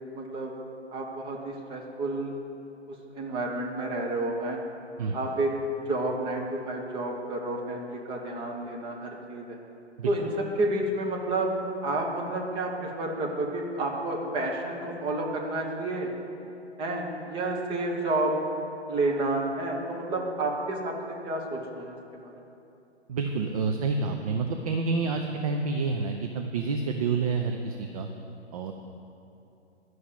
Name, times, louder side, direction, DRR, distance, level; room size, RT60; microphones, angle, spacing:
voice 1, 0.1-0.5 0.9-2.3 2.9-4.6 5.1-5.5 5.9-9.6 10.1-10.3 10.6-11.5 11.8-16.1 16.8-18.3 18.9-22.0 22.2-22.3, right 2 dB, 15° right, 0 dB, 1.1 m, -30 dB
voice 2, 5.0-5.3 10.0-10.1 23.1-28.1 28.5-28.7, right 4 dB, 30° right, 4 dB, 0.6 m, -28 dB
11.0 x 6.3 x 8.8 m, 2.8 s
figure-of-eight pair, 120°, 34 cm